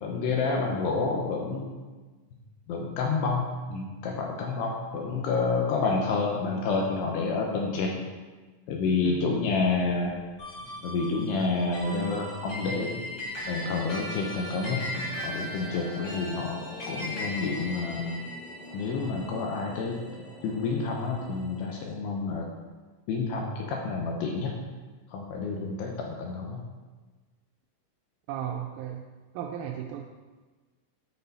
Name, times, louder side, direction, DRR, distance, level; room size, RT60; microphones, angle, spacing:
voice 1, 0.0-1.7 2.7-8.0 8.7-10.1 10.8-12.9 13.5-16.6 16.9-18.2 18.7-20.0 20.4-22.5 23.1-24.5 25.1-26.6, left 4 dB, 90° left, 0 dB, 2.3 m, -29 dB
voice 2, 9.0-9.3 28.3-29.1 29.3-30.0, right 10 dB, 90° right, 2 dB, 3.2 m, -35 dB
sound 1, 9.9-22.4, left 2 dB, 70° left, 2.9 m, -47 dB
sound 2, 10.4-21.0, equal, 35° left, 1.5 m, -39 dB
10.0 x 4.5 x 4.1 m, 1.3 s
omnidirectional pair, 5.8 m